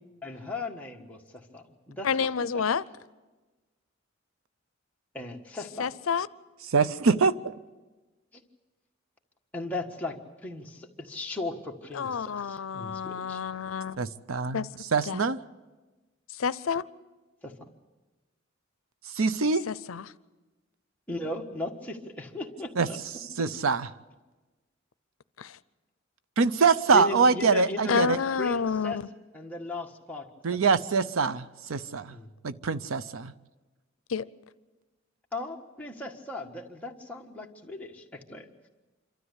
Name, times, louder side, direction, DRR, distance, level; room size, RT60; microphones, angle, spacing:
voice 1, 0.2-2.6 5.1-5.9 8.3-8.4 9.5-10.2 10.4-13.4 17.4-17.5 21.1-23.0 26.9-28.0 28.4-29.0 29.3-30.3 32.1-32.3 35.3-38.5, left 2 dB, 10° left, 0 dB, 1.5 m, -37 dB
voice 2, 2.0-2.8 5.8-6.3 11.9-14.0 14.5-14.7 15.0-15.2 16.4-16.8 19.7-20.0 25.4-25.6 27.9-28.9 34.1-34.2, left 6 dB, 90° left, 17 dB, 0.6 m, -29 dB
voice 3, 6.7-7.3 14.0-14.6 14.9-15.4 19.1-19.7 22.8-22.9 23.4-23.9 26.4-28.2 30.4-32.2 32.4-33.3, right 4 dB, 90° right, 15 dB, 0.6 m, -24 dB
26.5 x 13.0 x 8.2 m, 1.2 s
head